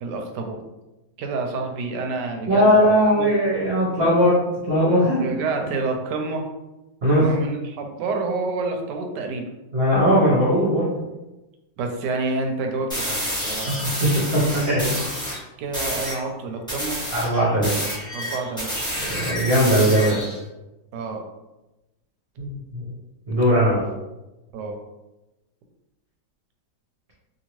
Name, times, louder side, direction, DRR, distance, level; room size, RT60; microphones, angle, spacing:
voice 1, 0.0-0.6 1.2-3.3 5.2-6.4 7.2-9.5 11.8-13.2 13.4-14.0 15.6-17.0 18.1-18.7 20.0-20.2 20.9-21.2 24.5-24.8, right 3 dB, 75° right, 3 dB, 1.1 m, -28 dB
voice 2, 2.5-4.4 4.7-5.2 7.0-7.4 9.7-11.0 13.7-13.8 14.0-15.0 17.1-17.7 19.0-20.2 22.4-22.8 23.3-23.8, equal, 45° right, -7 dB, 0.9 m, -19 dB
sound 1, 12.9-15.4 15.7-16.2 16.7-20.4, equal, 5° left, 0.7 m, -29 dB
2.8 x 2.7 x 3.0 m, 1.0 s
omnidirectional pair, 2.0 m